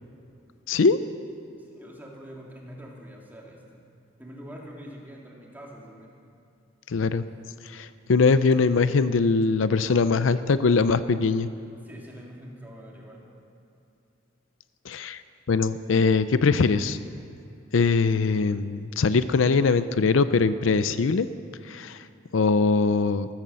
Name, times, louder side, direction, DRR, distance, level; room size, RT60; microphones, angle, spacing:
voice 1, 0.7-1.0 6.9-7.2 7.6-11.5 14.9-15.2 15.5-17.0 17.7-21.3 21.6-22.0 22.3-23.3, left 4 dB, 75° left, 13 dB, 0.5 m, -22 dB
voice 2, 1.6-3.9 4.2-6.2 11.8-13.2, equal, 10° right, -2 dB, 2.5 m, -44 dB
14.0 x 14.0 x 6.9 m, 2.7 s
head